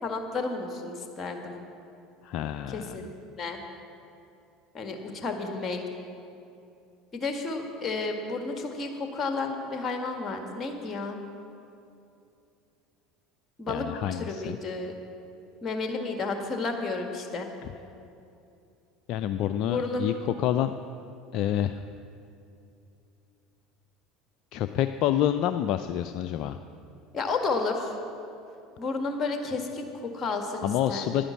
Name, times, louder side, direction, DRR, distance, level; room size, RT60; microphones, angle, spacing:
voice 1, 0.0-1.5 2.7-3.6 4.7-5.8 7.1-11.2 13.6-13.9 14.1-14.9 15.6-17.5 19.6-20.1 27.1-27.9 28.8-31.1, left 3 dB, 30° left, 4 dB, 1.8 m, -32 dB
voice 2, 2.2-3.1 13.7-14.6 17.6-17.7 19.1-20.7 21.3-21.8 24.5-26.6 30.6-31.2, left 11 dB, 55° left, 10 dB, 0.3 m, -28 dB
10.5 x 10.0 x 7.3 m, 2.7 s
hypercardioid pair, 70°, 0 cm